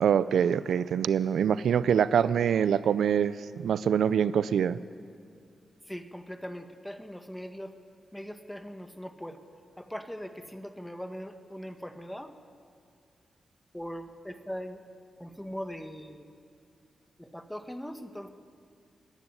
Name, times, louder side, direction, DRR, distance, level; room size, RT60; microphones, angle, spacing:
voice 1, 0.0-4.8, right 8 dB, 85° right, 16 dB, 0.5 m, -25 dB
voice 2, 5.9-7.7 8.1-9.4 9.8-12.3 13.7-14.8 15.2-16.2 17.2-18.3, equal, 5° left, 7 dB, 1.7 m, -40 dB
26.5 x 11.0 x 9.9 m, 2.3 s
cardioid pair, 60°, 0 cm